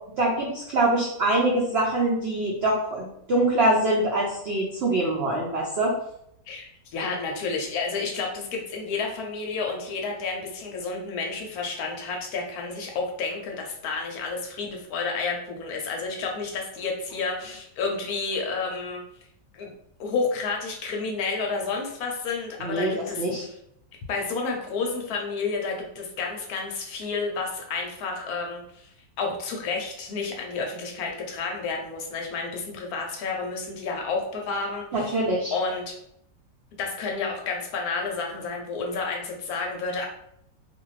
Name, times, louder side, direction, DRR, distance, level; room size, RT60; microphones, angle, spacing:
voice 1, 0.2-5.9 22.6-23.4 34.9-35.5, right 1 dB, 80° right, -3 dB, 0.5 m, -24 dB
voice 2, 6.5-19.0 19.5-19.7 20.0-23.5 24.1-35.1 35.5-35.9 36.8-40.1, left 4 dB, 70° left, 1 dB, 1.0 m, -30 dB
2.6 x 2.5 x 3.1 m, 0.74 s
omnidirectional pair, 1.8 m